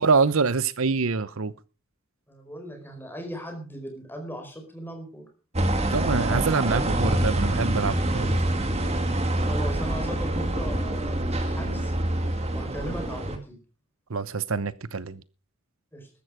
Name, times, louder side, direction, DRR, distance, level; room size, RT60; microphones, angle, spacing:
voice 1, 0.0-1.5 5.9-8.4 14.1-15.2, right 4 dB, 75° right, 0.8 m, -25 dB
voice 2, 2.3-5.3 9.4-11.9 12.5-13.6 15.9-16.1, equal, 10° left, 4.6 m, -38 dB
sound 1, 5.5-13.4, right 1 dB, 30° right, 2.2 m, -26 dB
14.5 x 12.5 x 4.9 m
head